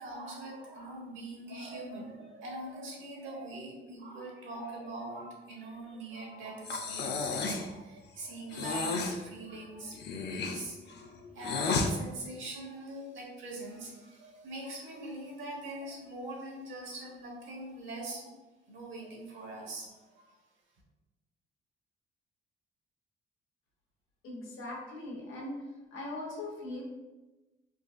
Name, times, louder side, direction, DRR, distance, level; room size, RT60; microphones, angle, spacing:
voice 1, 0.0-10.0 10.3-18.3 18.7-20.3, right 2 dB, 75° right, -1 dB, 1.0 m, -43 dB
Breathing, 6.6-7.7 8.5-9.2 9.9-11.9, left 4 dB, 60° left, 0.5 m, -32 dB
voice 2, 24.2-25.6 25.9-26.8, left 2 dB, 90° left, -2 dB, 0.9 m, -40 dB
3.9 x 2.5 x 2.4 m, 1.1 s
cardioid pair, 90°, 20 cm